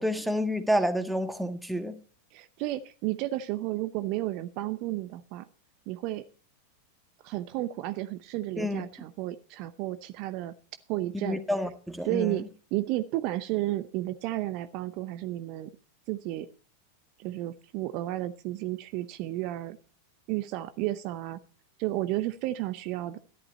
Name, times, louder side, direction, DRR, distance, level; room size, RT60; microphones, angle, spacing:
voice 1, 0.0-2.0 8.6-8.8 11.1-12.4, equal, ahead, 7 dB, 1.7 m, -29 dB
voice 2, 2.3-5.5 5.9-6.2 7.2-10.5 10.9-11.4 12.0-12.4 12.7-15.7 16.1-16.5 17.2-19.8 20.3-21.4 21.8-23.2, right 15 dB, 45° right, 12 dB, 0.7 m, -32 dB
13.5 x 11.5 x 4.2 m, 0.39 s
figure-of-eight pair, 90°, 0 cm